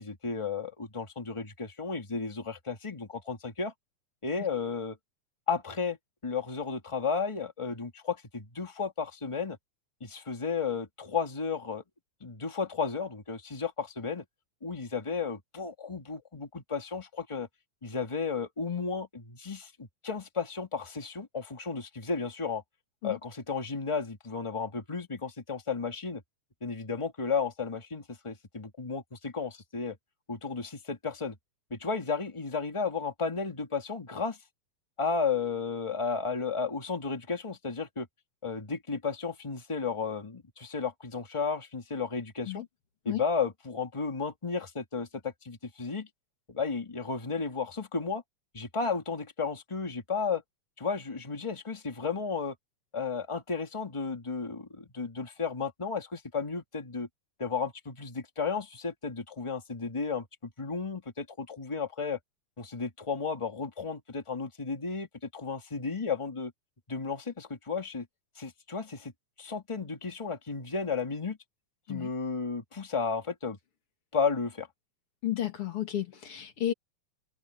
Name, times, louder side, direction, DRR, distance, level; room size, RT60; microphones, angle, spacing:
voice 1, 0.0-3.7 4.2-5.0 5.5-6.0 6.2-9.6 10.0-11.8 12.2-14.2 14.6-17.5 17.8-22.6 23.0-26.2 26.6-30.0 30.3-31.4 31.7-34.4 35.0-38.1 38.4-42.6 43.0-46.1 46.5-48.2 48.5-50.4 50.8-52.5 52.9-57.1 57.4-62.2 62.6-65.1 65.3-66.5 66.9-68.1 68.3-69.1 69.4-71.4 71.9-73.6 74.1-74.7, left 5 dB, 15° left, 1.5 m, -33 dB
voice 2, 75.2-76.7, left 12 dB, 50° left, 2.9 m, -32 dB
open air
omnidirectional pair, 3.4 m